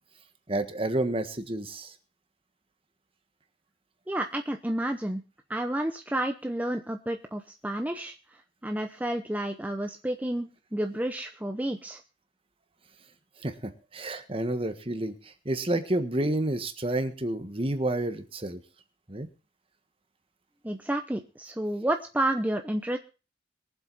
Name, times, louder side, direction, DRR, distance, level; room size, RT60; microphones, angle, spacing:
voice 1, 0.5-1.9 13.4-15.1 15.4-18.6 19.1-19.3, right 1 dB, 30° right, 9 dB, 1.5 m, -29 dB
voice 2, 4.1-5.2 5.5-8.1 8.6-12.0 20.6-23.0, right 1 dB, 10° right, 5 dB, 0.7 m, -30 dB
22.5 x 7.7 x 4.1 m, 0.33 s
head